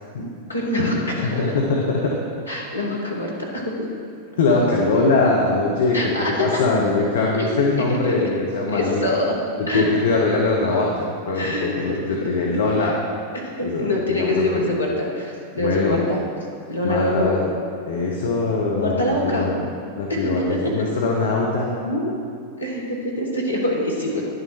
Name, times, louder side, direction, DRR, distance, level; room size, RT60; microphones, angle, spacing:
voice 1, 0.5-1.4 2.5-3.9 5.9-6.6 7.4-7.6 8.0-8.3 8.7-9.3 9.7-9.9 11.3-11.9 13.3-16.2 16.7-17.5 18.7-19.5 20.2-20.3 22.6-24.2, left 1 dB, 80° left, -3 dB, 1.6 m, -24 dB
voice 2, 1.2-2.2 4.4-9.1 9.6-13.0 13.6-14.7 15.6-16.0 16.8-17.4 17.9-19.7 19.9-22.1, left 3 dB, 60° left, -2 dB, 1.0 m, -22 dB
10.5 x 6.6 x 4.5 m, 2.3 s
figure-of-eight pair, 90°, 0 cm